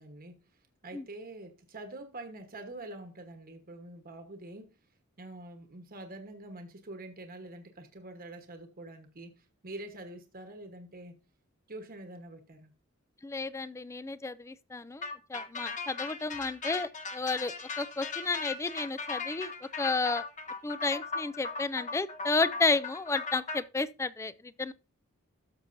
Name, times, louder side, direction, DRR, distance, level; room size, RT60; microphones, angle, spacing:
voice 1, 0.0-4.7 5.2-11.1 11.7-12.7, right 2 dB, 45° right, 1.2 m, -46 dB
voice 2, 13.2-19.5 19.8-20.2 20.6-24.7, left 3 dB, 15° left, 0.4 m, -32 dB
sound 1, 15.0-23.6, left 4 dB, 35° left, 1.2 m, -38 dB
12.5 x 6.5 x 2.6 m
head